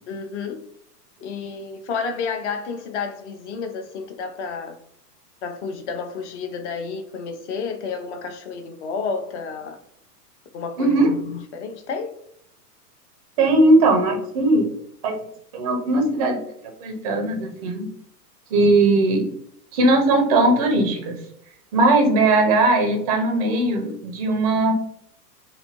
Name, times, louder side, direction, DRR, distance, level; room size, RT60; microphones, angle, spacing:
voice 1, 0.1-0.6 1.2-4.8 5.4-9.8 10.5-12.1, left 5 dB, 45° left, 0.5 m, -31 dB
voice 2, 10.8-11.1 13.4-14.7 15.0-15.2 15.5-16.4 16.8-17.9 18.5-19.3 19.7-21.2 21.7-24.7, right 2 dB, 25° right, 0.4 m, -19 dB
2.6 x 2.4 x 2.8 m
hypercardioid pair, 110°, 49 cm